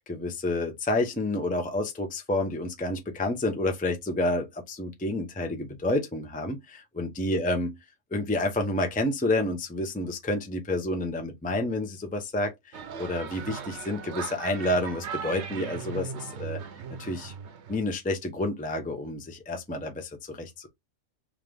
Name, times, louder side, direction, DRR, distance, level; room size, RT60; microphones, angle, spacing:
voice 1, 0.1-7.7 8.1-16.6 17.0-17.3 17.7-20.7, left 1 dB, 10° left, 0.6 m, -29 dB
sound 1, 12.7-17.8, right 6 dB, 70° right, 1.0 m, -38 dB
3.7 x 3.3 x 3.4 m
omnidirectional pair, 1.2 m